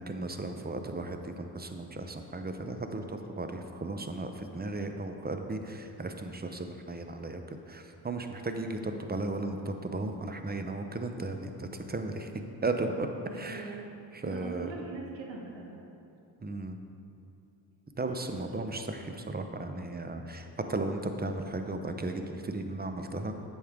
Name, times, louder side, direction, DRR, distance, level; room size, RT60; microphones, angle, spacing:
voice 1, 0.0-12.3 12.6-13.1 13.3-13.8 14.1-14.7 16.4-16.8 18.0-23.3, right 2 dB, 20° right, 6 dB, 0.7 m, -35 dB
voice 2, 12.9-13.8 14.2-15.8, right 3 dB, 70° right, 0 dB, 1.3 m, -42 dB
8.3 x 6.3 x 3.7 m, 2.7 s
supercardioid pair, 45°, 47 cm